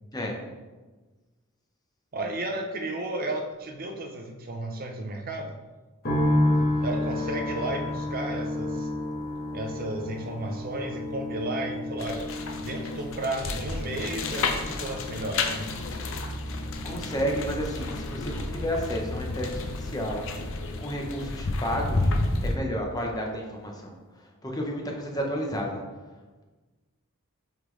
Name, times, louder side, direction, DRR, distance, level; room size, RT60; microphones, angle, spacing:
voice 1, 2.1-5.6 6.8-8.9 9.5-12.3 12.6-15.7, right 2 dB, 40° right, 3 dB, 0.6 m, -33 dB
sound 1, 6.0-21.3 21.6-22.4, left 1 dB, 40° left, 1.3 m, -32 dB
sound 2, 12.0-22.6, left 2 dB, 60° left, 0.6 m, -31 dB
voice 2, 16.8-20.3 20.8-22.1 22.4-25.8, equal, 15° left, 0 dB, 0.8 m, -32 dB
8.2 x 3.8 x 3.2 m, 1.3 s
head